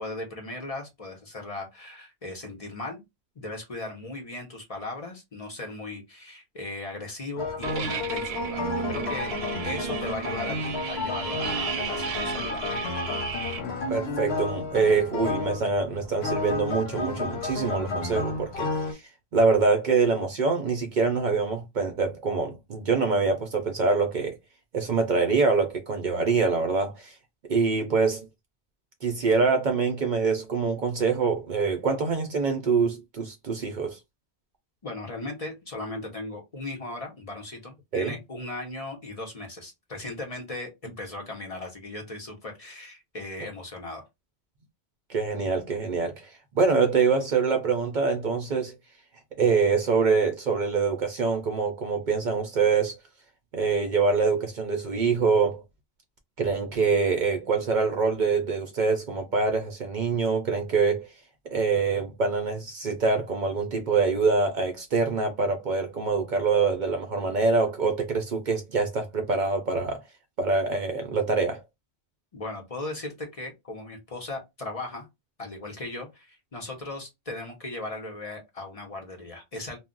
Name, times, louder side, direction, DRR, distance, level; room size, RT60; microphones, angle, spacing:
voice 1, 0.0-3.0 3.4-9.3 9.6-12.8 34.8-44.0 72.3-75.1 75.4-79.8, left 2 dB, 40° left, 0.7 m, -37 dB
sound 1, 7.4-18.9, left 3 dB, 80° left, 0.9 m, -32 dB
sound 2, 7.6-13.6, right 7 dB, 80° right, 0.8 m, -34 dB
voice 2, 13.9-19.0 19.3-24.4 24.7-27.1 27.5-28.3 29.0-34.0 37.9-38.1 45.1-48.7 49.4-53.0 53.5-55.6 56.4-61.1 61.5-70.0 70.4-71.6, right 4 dB, 55° right, 0.6 m, -25 dB
2.3 x 2.0 x 3.7 m
omnidirectional pair, 1.1 m